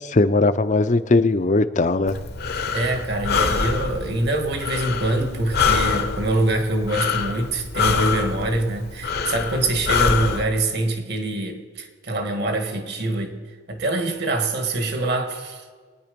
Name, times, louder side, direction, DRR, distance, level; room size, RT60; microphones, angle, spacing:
voice 1, 0.0-2.2, left 2 dB, 40° left, 12 dB, 0.6 m, -19 dB
Breathing, 2.1-10.4, left 5 dB, 55° left, 0.9 m, -25 dB
voice 2, 2.7-13.4 13.7-15.7, right 2 dB, 55° right, 5 dB, 1.7 m, -24 dB
22.5 x 9.6 x 5.2 m, 1.5 s
head